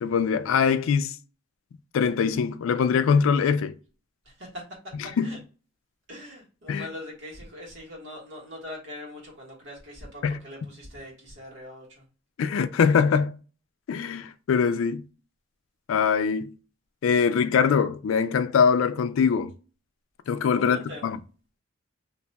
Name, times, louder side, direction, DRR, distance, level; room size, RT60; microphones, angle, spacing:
voice 1, 0.0-1.2 1.9-3.7 5.0-5.3 6.7-6.9 10.2-10.4 12.4-13.3 13.9-15.0 15.9-16.5 17.0-19.5 20.3-21.2, left 6 dB, 80° left, 0.3 m, -23 dB
voice 2, 4.2-4.6 5.2-5.4 6.1-12.0 20.5-21.1, left 1 dB, 65° right, 1.3 m, -42 dB
2.6 x 2.2 x 3.9 m
head